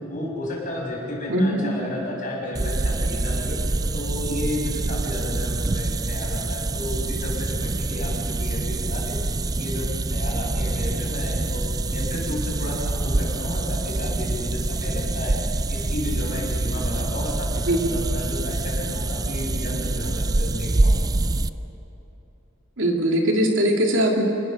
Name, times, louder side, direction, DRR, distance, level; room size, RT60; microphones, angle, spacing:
voice 1, 0.1-9.2 9.4-21.0, left 1 dB, 45° left, -3 dB, 6.5 m, -32 dB
voice 2, 1.3-1.6 17.7-17.9 22.8-24.2, right 1 dB, 80° right, 1 dB, 3.0 m, -20 dB
sound 1, 2.5-21.5, right 2 dB, 20° right, 0.4 m, -26 dB
26.5 x 19.5 x 6.6 m, 2.8 s
head